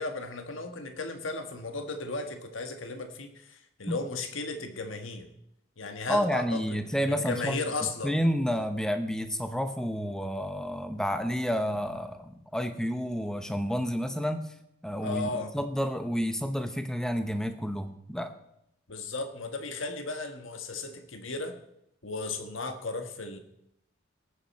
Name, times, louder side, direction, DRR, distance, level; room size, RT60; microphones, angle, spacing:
voice 1, 0.0-5.3 5.8-6.6 7.0-8.1 15.0-15.5 18.9-21.5 22.0-23.4, left 3 dB, 80° left, 6 dB, 1.5 m, -35 dB
voice 2, 6.1-14.5 14.8-18.3, equal, 5° left, 8 dB, 0.9 m, -30 dB
19.0 x 9.1 x 4.3 m, 0.79 s
head